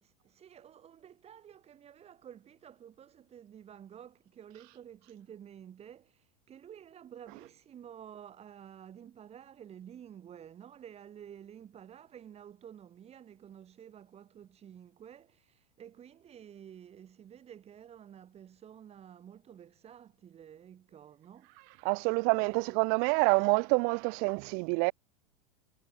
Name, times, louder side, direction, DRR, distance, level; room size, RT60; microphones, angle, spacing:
voice 1, 0.0-21.5 22.4-22.8, right 9 dB, 30° right, 7.0 m, -51 dB
voice 2, 21.8-24.9, right 38 dB, 45° right, 0.4 m, -27 dB
hypercardioid pair, 100°, 21 cm